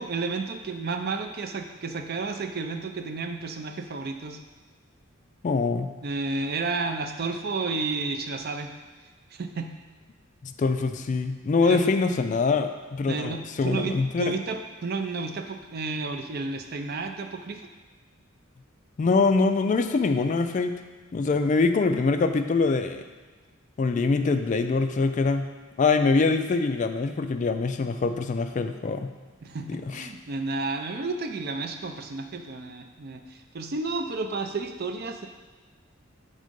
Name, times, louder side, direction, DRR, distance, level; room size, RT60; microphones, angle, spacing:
voice 1, 0.0-4.4 6.0-8.7 9.3-9.7 11.7-11.9 13.1-17.7 29.4-35.3, right 3 dB, 50° right, 6 dB, 0.5 m, -31 dB
voice 2, 5.4-5.9 10.4-14.3 19.0-20.7 21.1-23.0 23.8-25.5 25.8-29.1 29.7-30.1, left 4 dB, 40° left, 8 dB, 0.3 m, -24 dB
6.4 x 3.7 x 5.1 m, 1.4 s
head